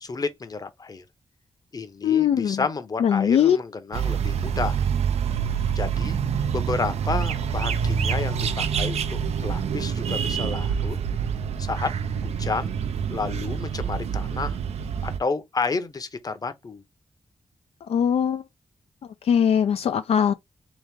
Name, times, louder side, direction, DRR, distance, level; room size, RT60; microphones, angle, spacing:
voice 1, 0.0-1.0 1.7-4.8 5.7-6.2 6.5-11.0 11.6-11.9 12.2-12.8 13.1-14.6 15.0-16.8, left 4 dB, 35° left, 0.8 m, -31 dB
voice 2, 2.0-2.6 3.0-3.6 17.9-18.4 19.2-20.3, left 8 dB, 70° left, 0.4 m, -20 dB
sound 1, 3.9-15.2, right 7 dB, 90° right, 0.5 m, -26 dB
3.5 x 3.0 x 3.5 m
wide cardioid pair, 100°, 11 cm